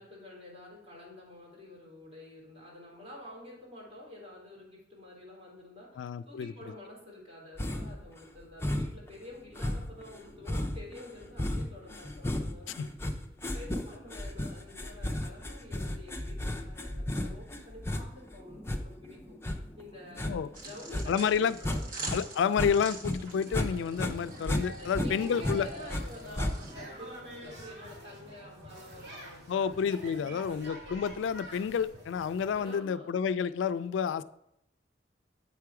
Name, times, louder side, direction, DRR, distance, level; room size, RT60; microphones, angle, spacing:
voice 1, 0.0-12.9 13.4-19.4 19.8-20.4 20.6-21.9 24.8-29.7 30.1-30.7 32.6-33.2, left 1 dB, 30° right, 3.3 m, -49 dB
voice 2, 5.9-6.5 12.8-12.9 20.2-20.5 21.1-21.6 22.1-25.7 29.5-34.2, left 7 dB, 85° left, 0.3 m, -30 dB
sound 1, 7.6-8.0 8.6-9.1 9.6-22.2 22.5-23.7 23.9-26.0 26.4-26.9, left 1 dB, 15° left, 0.5 m, -34 dB
sound 2, 20.5-26.7, right 3 dB, 50° right, 1.3 m, -46 dB
sound 3, 23.4-32.7, right 1 dB, 65° right, 2.2 m, -47 dB
8.3 x 4.7 x 4.8 m
head